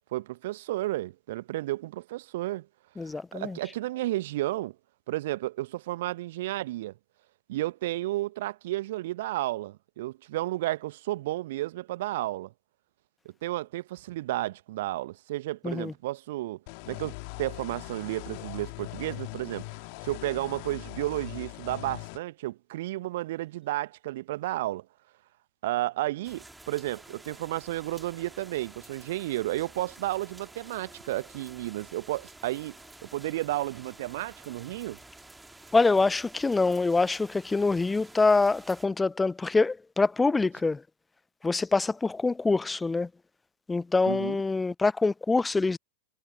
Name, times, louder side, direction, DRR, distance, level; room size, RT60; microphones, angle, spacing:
voice 1, 0.1-2.7 3.1-4.7 5.1-6.9 7.5-12.5 13.4-16.6 16.9-19.6 20.0-24.8 25.6-32.7 33.0-35.0 44.1-44.4, right 16 dB, 55° right, 1.3 m, -32 dB
voice 2, 3.0-3.6 15.6-15.9 35.7-40.8 41.4-43.1 43.7-45.8, left 3 dB, 10° left, 0.4 m, -25 dB
sound 1, 16.7-22.2, left 36 dB, 45° left, 1.9 m, -41 dB
sound 2, 26.2-38.9, right 2 dB, 5° right, 2.2 m, -51 dB
figure-of-eight pair, 90°, 0 cm